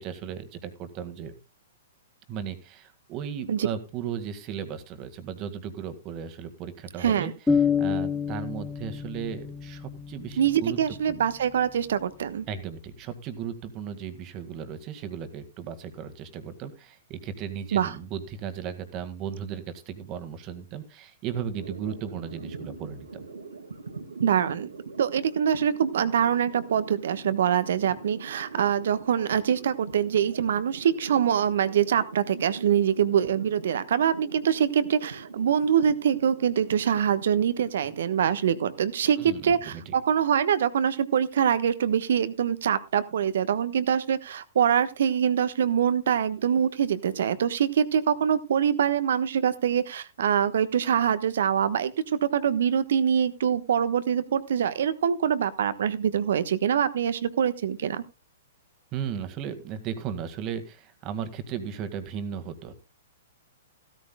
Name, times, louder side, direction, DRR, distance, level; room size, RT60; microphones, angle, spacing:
voice 1, 0.0-1.3 2.3-7.3 7.8-11.2 12.5-23.3 39.2-39.9 58.9-62.7, right 8 dB, 35° right, 9 dB, 1.9 m, -36 dB
voice 2, 7.0-7.3 10.4-12.4 17.7-17.9 24.2-24.7 25.0-51.9 52.2-58.0, right 8 dB, 60° right, 13 dB, 1.2 m, -24 dB
sound 1, 7.5-11.2, left 6 dB, 10° left, 1.1 m, -28 dB
sound 2, 21.5-41.0, right 4 dB, 80° right, 2.2 m, -43 dB
16.0 x 13.5 x 2.3 m, 0.28 s
figure-of-eight pair, 110°, 0 cm